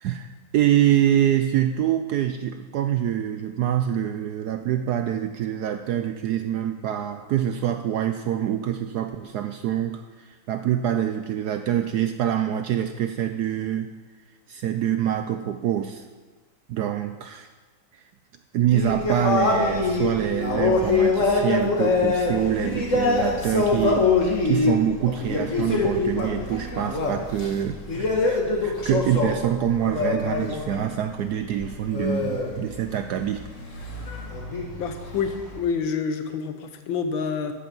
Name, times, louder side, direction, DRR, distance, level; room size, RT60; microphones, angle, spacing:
voice 1, 0.0-13.9 14.5-16.0 16.7-17.5 17.9-18.0 18.5-33.5, right 10 dB, 75° right, 8 dB, 0.9 m, -25 dB
sound 1, 18.7-30.9 31.1-35.6, left 3 dB, 40° left, 1.9 m, -24 dB
voice 2, 34.8-37.5, left 6 dB, 80° left, 7 dB, 1.7 m, -28 dB
13.0 x 8.5 x 5.4 m, 1.4 s
omnidirectional pair, 2.1 m